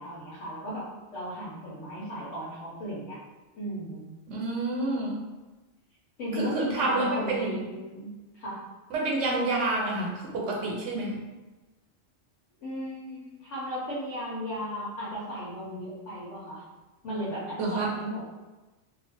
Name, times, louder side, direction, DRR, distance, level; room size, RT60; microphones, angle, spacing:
voice 1, 0.0-3.2 3.5-4.1 6.2-8.1 8.3-8.6 12.6-16.6 17.0-18.2, equal, 85° left, -7 dB, 1.1 m, -35 dB
voice 2, 4.3-5.2 6.3-7.6 8.9-11.2 17.6-17.9, right 2 dB, 80° right, -2 dB, 1.0 m, -28 dB
2.4 x 2.4 x 3.3 m, 1.2 s
omnidirectional pair, 1.2 m